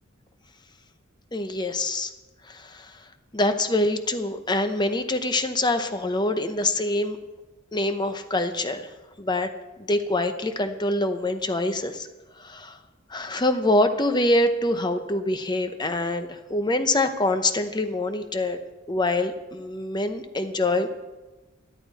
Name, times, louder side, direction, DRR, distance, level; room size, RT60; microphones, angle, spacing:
voice 1, 1.3-2.1 2.4-3.0 3.3-7.2 7.7-8.9 9.2-9.5 9.9-12.1 12.4-12.8 13.1-18.6 18.9-20.9, left 2 dB, 20° left, 9 dB, 0.8 m, -25 dB
12.5 x 11.5 x 4.1 m, 1.2 s
head